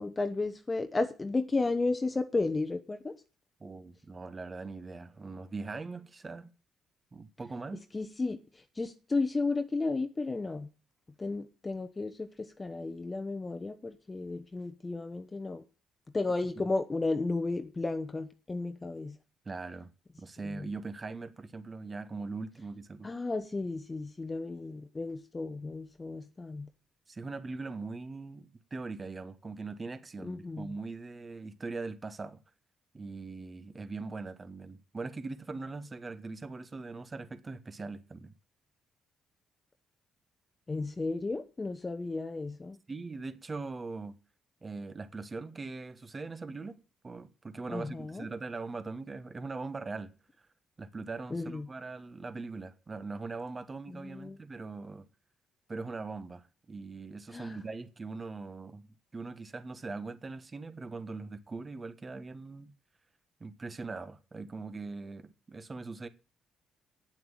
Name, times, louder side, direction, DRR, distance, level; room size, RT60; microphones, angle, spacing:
voice 1, 0.0-3.2 7.9-10.7 11.2-15.6 16.1-19.2 20.4-20.7 23.0-26.7 30.2-30.7 40.7-42.8 47.7-48.3 51.3-51.7 53.9-54.4 57.3-57.6, left 3 dB, 25° left, 1.0 m, -33 dB
voice 2, 3.6-6.5 7.1-7.9 16.6-16.7 19.4-19.9 20.2-23.1 27.1-32.4 32.9-38.3 42.9-44.2 44.6-46.8 47.0-50.1 50.8-55.1 55.7-62.7 63.4-66.1, right 3 dB, 30° right, 1.3 m, -41 dB
9.0 x 7.6 x 8.9 m
cardioid pair, 90°, 0 cm